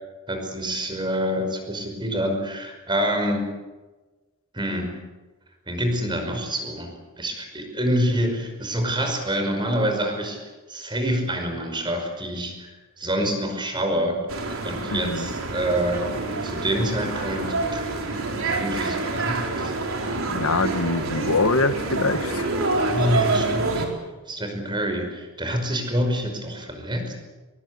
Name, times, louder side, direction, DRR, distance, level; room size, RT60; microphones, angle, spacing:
voice 1, 0.3-3.5 4.5-5.0 5.7-10.4 10.7-16.1 16.4-18.1 18.5-19.7 22.9-23.9 24.3-27.1, equal, 20° right, 4 dB, 5.5 m, -27 dB
sound 1, 14.3-23.9, right 3 dB, 70° right, 4.5 m, -27 dB
voice 2, 14.9-15.3 20.1-22.5, left 3 dB, 70° left, 11 dB, 1.4 m, -24 dB
23.0 x 23.0 x 8.4 m, 1.2 s
head